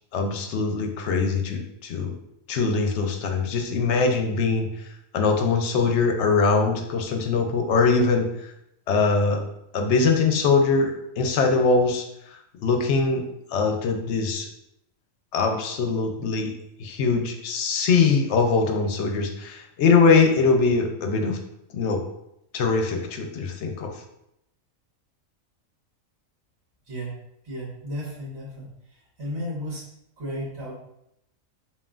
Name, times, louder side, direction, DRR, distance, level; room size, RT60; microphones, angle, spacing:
voice 1, 0.1-2.1 2.5-4.7 5.1-8.3 8.9-9.4 9.7-12.0 12.3-13.2 13.5-14.5 15.3-16.5 16.8-21.4 21.7-22.0 22.5-23.9, left 4 dB, 65° left, 4 dB, 0.8 m, -22 dB
voice 2, 26.8-27.2 27.4-29.9 30.2-30.8, equal, 55° right, -6 dB, 1.6 m, -34 dB
5.5 x 2.4 x 2.4 m, 0.80 s
omnidirectional pair, 1.4 m